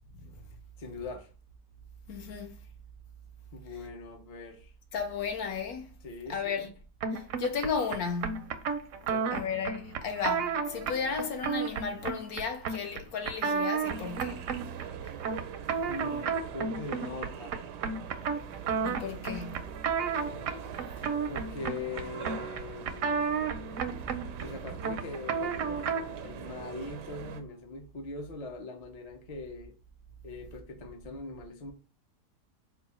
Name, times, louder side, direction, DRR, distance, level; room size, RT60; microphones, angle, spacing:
voice 1, 0.8-1.3 3.5-4.7 6.0-6.7 9.1-9.5 15.9-17.5 21.3-23.3 23.7-23.8 24.3-29.8 30.2-31.7, left 3 dB, 45° left, 0.5 m, -41 dB
voice 2, 2.1-2.6 4.9-5.9 6.3-6.7 7.1-8.7 9.3-14.4 18.8-19.8 21.0-21.1, left 5 dB, 70° left, 1.1 m, -34 dB
sound 1, 7.0-26.2, right 5 dB, 70° right, 0.8 m, -33 dB
sound 2, 13.8-27.4, right 8 dB, 90° right, 1.2 m, -43 dB
3.8 x 2.4 x 4.1 m
omnidirectional pair, 1.7 m